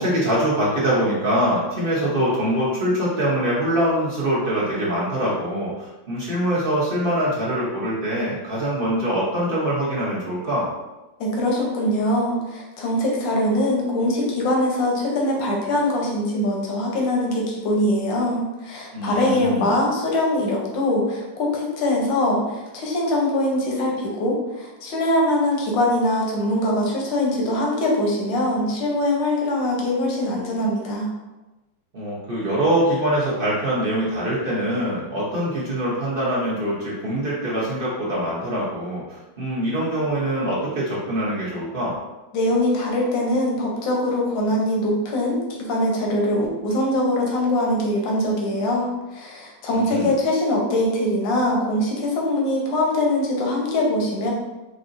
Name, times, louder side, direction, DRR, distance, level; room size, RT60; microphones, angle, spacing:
voice 1, 0.0-10.7 18.9-19.8 31.9-41.9 49.7-50.1, right 1 dB, 45° right, -6 dB, 0.7 m, -23 dB
voice 2, 11.2-31.1 42.3-54.3, left 1 dB, 80° left, -2 dB, 1.6 m, -22 dB
4.7 x 2.8 x 2.6 m, 1.1 s
omnidirectional pair, 2.0 m